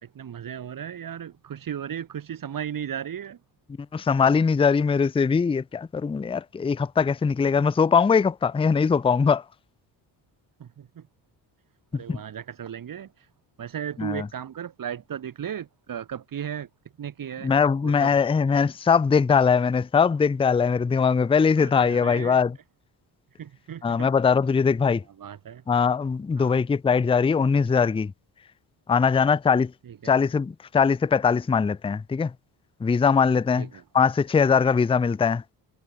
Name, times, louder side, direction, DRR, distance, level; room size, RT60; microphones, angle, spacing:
voice 1, 0.0-3.4 10.6-11.1 11.9-13.3 13.6-16.7 17.0-17.5 17.8-18.1 21.6-22.4 23.3-24.1 25.2-25.6 26.4-26.6 29.8-30.2 33.6-33.8, right 9 dB, 55° right, 3.4 m, -36 dB
voice 2, 3.9-9.4 11.9-12.2 14.0-14.3 17.4-22.6 23.8-25.0 25.7-28.1 28.9-29.7 30.0-32.3 32.8-33.7 33.9-35.4, left 6 dB, 15° left, 0.5 m, -21 dB
cardioid pair, 115°, 41 cm